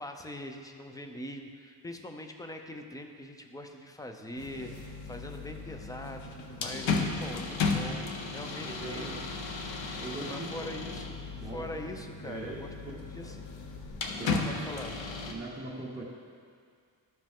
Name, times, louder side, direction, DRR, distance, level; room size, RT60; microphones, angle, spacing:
voice 1, 0.0-8.1 8.3-9.1 10.3-13.4 14.2-15.0, left 1 dB, 10° left, 5 dB, 0.5 m, -42 dB
sound 1, 4.4-15.3, left 4 dB, 85° left, 0.9 m, -35 dB
voice 2, 8.6-9.2 10.0-10.7 11.3-11.7 12.2-12.6 13.2-13.3 14.2-14.4 15.3-16.0, right 2 dB, 15° right, -8 dB, 1.0 m, -40 dB
13.0 x 5.2 x 3.6 m, 2.1 s
wide cardioid pair, 150°, 44 cm